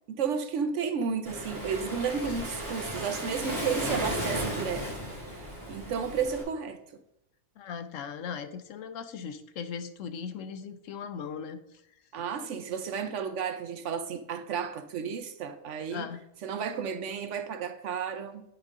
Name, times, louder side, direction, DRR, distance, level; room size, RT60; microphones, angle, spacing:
voice 1, 0.2-4.9 5.3-6.8 12.1-16.1 16.4-18.4, right 6 dB, 65° right, 0.8 m, -32 dB
Waves surf, 1.2-6.4, equal, 15° right, 2.7 m, -35 dB
voice 2, 7.6-11.8 15.9-16.2, left 6 dB, 70° left, 0.9 m, -38 dB
9.0 x 5.1 x 3.6 m
omnidirectional pair, 1.5 m